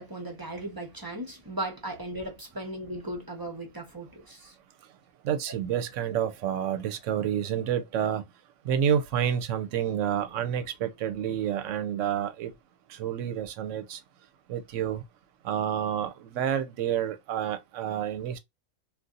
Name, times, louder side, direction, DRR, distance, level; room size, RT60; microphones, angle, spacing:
voice 1, 0.0-4.5, right 1 dB, 20° right, 0.6 m, -37 dB
voice 2, 5.2-8.2 8.6-12.5 12.9-14.0 14.5-15.0 15.4-18.4, right 9 dB, 75° right, 0.9 m, -29 dB
2.6 x 2.4 x 3.7 m
omnidirectional pair, 1.4 m